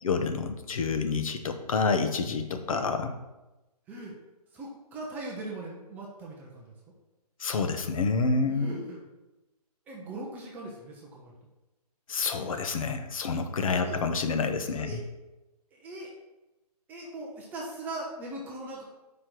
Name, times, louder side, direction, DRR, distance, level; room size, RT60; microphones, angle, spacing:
voice 1, 0.0-3.1 7.4-8.7 12.1-15.0, left 4 dB, 55° left, 7 dB, 0.9 m, -28 dB
voice 2, 4.5-6.7 8.4-9.1 9.9-11.3 13.7-14.0 14.6-15.0 15.7-16.1 16.9-18.8, right 2 dB, 10° right, -2 dB, 0.5 m, -40 dB
5.1 x 4.3 x 6.1 m, 1.0 s
hypercardioid pair, 155°, 21 cm